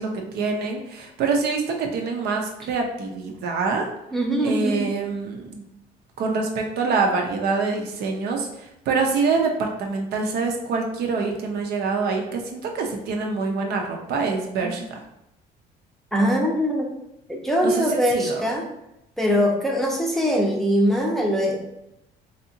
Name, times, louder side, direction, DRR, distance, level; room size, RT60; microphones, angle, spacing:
voice 1, 0.0-3.9 4.4-5.7 6.2-14.8 17.6-17.8 18.1-18.4, right 4 dB, 70° right, 2 dB, 0.6 m, -25 dB
voice 2, 4.1-4.8 14.6-14.8 16.1-16.9 17.3-18.7 19.2-21.6, equal, ahead, -1 dB, 0.6 m, -22 dB
3.3 x 2.7 x 2.7 m, 0.86 s
cardioid pair, 110°, 17 cm